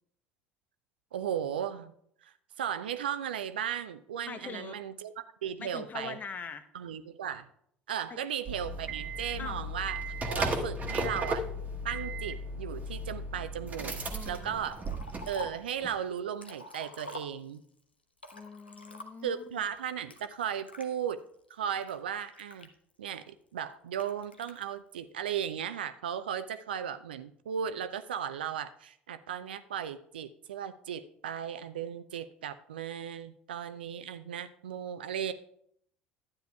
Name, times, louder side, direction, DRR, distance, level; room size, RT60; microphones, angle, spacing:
voice 1, 1.1-1.9 2.2-6.2 6.7-7.5 7.9-11.5 11.8-14.0 14.3-14.8 15.3-17.6 19.2-21.2 21.5-22.7 23.0-35.3, right 9 dB, 75° right, 12 dB, 0.4 m, -36 dB
voice 2, 4.3-4.8 5.6-6.6 9.4-9.6 14.1-14.7 18.3-19.6, left 6 dB, 30° left, 11 dB, 0.8 m, -42 dB
sound 1, 8.5-15.6 15.8-15.9, right 1 dB, 30° right, 1.2 m, -35 dB
Liquid, 14.7-15.7 16.2-17.7 18.2-19.4 20.1-20.9 21.5-23.1 23.9-24.6, left 2 dB, 90° left, 0.6 m, -46 dB
12.0 x 9.2 x 2.3 m, 0.70 s
figure-of-eight pair, 65°, 5 cm